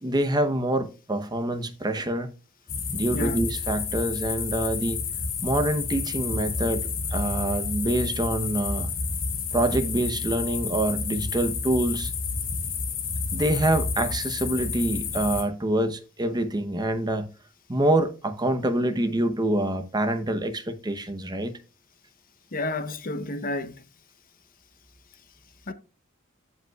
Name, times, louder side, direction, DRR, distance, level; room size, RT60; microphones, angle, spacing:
voice 1, 0.0-2.3 2.9-5.0 5.4-8.9 9.5-12.1 13.3-17.3 17.7-21.6, right 1 dB, 20° right, 0.8 m, -26 dB
sound 1, 2.7-15.4, left 4 dB, 85° left, 2.8 m, -30 dB
voice 2, 22.5-23.9 25.7-25.8, left 2 dB, 45° left, 0.9 m, -31 dB
15.5 x 5.2 x 2.3 m
head